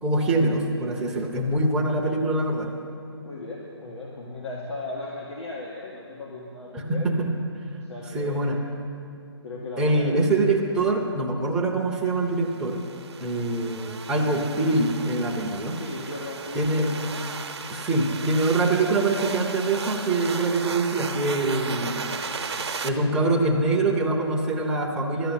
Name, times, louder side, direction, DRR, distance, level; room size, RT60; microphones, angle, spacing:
voice 1, 0.0-2.7 6.7-7.3 8.1-8.6 9.8-12.8 13.2-15.8 16.5-16.9 17.7-22.1 22.8-25.3, right 2 dB, 5° right, -2 dB, 0.7 m, -24 dB
voice 2, 3.2-7.1 7.7-8.6 9.4-10.2 15.8-17.1 22.2-22.7, left 2 dB, 80° left, -4 dB, 1.9 m, -37 dB
sound 1, 12.5-22.9, right 5 dB, 70° right, 0.9 m, -35 dB
12.0 x 6.4 x 9.0 m, 2.5 s
hypercardioid pair, 165°, 14 cm